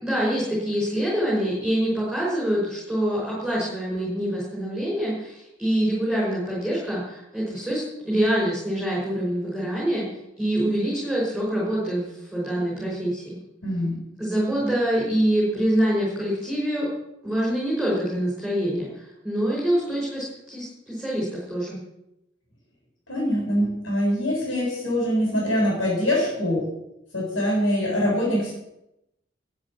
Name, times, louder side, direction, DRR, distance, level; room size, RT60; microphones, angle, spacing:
voice 1, 0.0-10.1 10.4-13.2 14.2-16.9 17.2-21.8, right 1 dB, ahead, -7 dB, 5.6 m, -25 dB
voice 2, 13.6-14.1 14.3-14.8 23.1-26.7 27.1-28.5, equal, 90° left, -3 dB, 7.4 m, -24 dB
13.0 x 9.3 x 9.1 m, 0.86 s
head